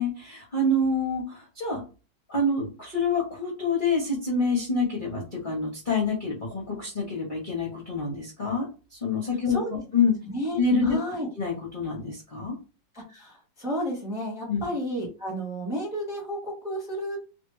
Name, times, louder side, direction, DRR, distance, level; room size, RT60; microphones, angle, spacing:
voice 1, 0.0-1.8 2.3-8.7 8.9-10.1 10.6-11.0 11.4-12.6 14.5-14.6, left 3 dB, 35° left, -3 dB, 0.8 m, -27 dB
voice 2, 10.3-11.3 12.9-17.2, equal, ahead, -2 dB, 0.9 m, -32 dB
3.4 x 2.7 x 3.1 m, 0.34 s
omnidirectional pair, 2.1 m